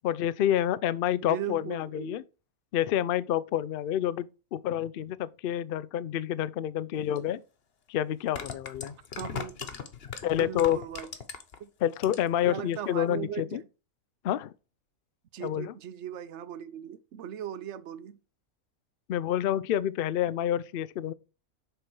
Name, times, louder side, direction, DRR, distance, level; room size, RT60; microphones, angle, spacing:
voice 1, 0.0-2.2 2.7-7.4 7.9-8.9 10.2-10.8 11.8-13.6 14.2-14.5 15.4-15.7 19.1-21.1, left 11 dB, 85° left, 0.5 m, -28 dB
voice 2, 1.1-2.2 9.2-9.7 10.4-11.1 11.6-11.7 12.5-13.7 15.3-18.2, right 10 dB, 60° right, 0.8 m, -38 dB
sound 1, 7.2-7.3 8.1-11.6 11.9-12.4 12.7-12.8, left 6 dB, 50° left, 1.1 m, -38 dB
6.8 x 4.4 x 4.7 m
omnidirectional pair, 1.5 m